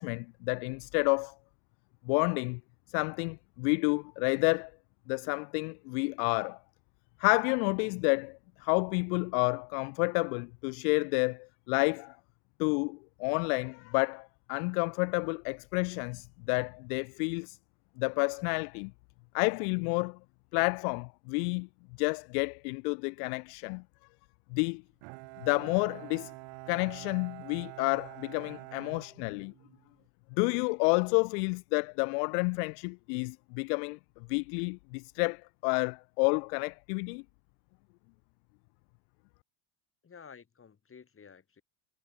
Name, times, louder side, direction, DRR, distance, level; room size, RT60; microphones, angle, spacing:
voice 1, 0.0-1.3 2.1-2.6 2.9-4.7 5.1-6.6 7.2-12.2 12.6-17.6 18.0-18.9 19.3-20.2 20.5-21.7 22.0-23.8 24.5-24.8 25.4-26.3 26.7-29.5 30.4-34.0 34.3-37.2, left 35 dB, 85° left, 0.6 m, -30 dB
Bowed string instrument, 25.0-29.9, right 36 dB, 75° right, 1.8 m, -47 dB
voice 2, 40.0-41.6, left 6 dB, 30° left, 7.9 m, -52 dB
supercardioid pair, 115°, 45 cm